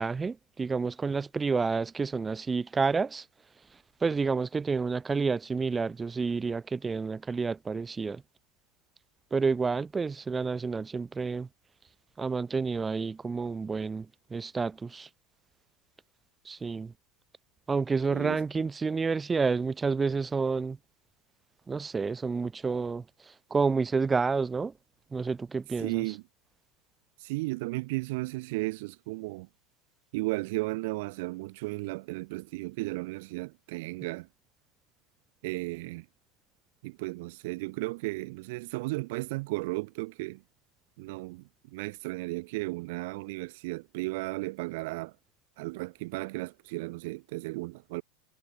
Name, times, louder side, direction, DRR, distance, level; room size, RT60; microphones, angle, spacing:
voice 1, 0.0-3.3 4.0-8.2 9.3-11.5 12.2-15.1 16.5-16.9 17.7-20.8 21.7-24.7 25.1-26.0, right 4 dB, 15° right, 1.9 m, -29 dB
voice 2, 25.8-26.2 27.2-29.5 30.1-34.3 35.4-36.1 36.8-40.4 41.0-45.1 45.6-48.0, right 23 dB, 65° right, 1.2 m, -34 dB
hypercardioid pair, 115°, 0 cm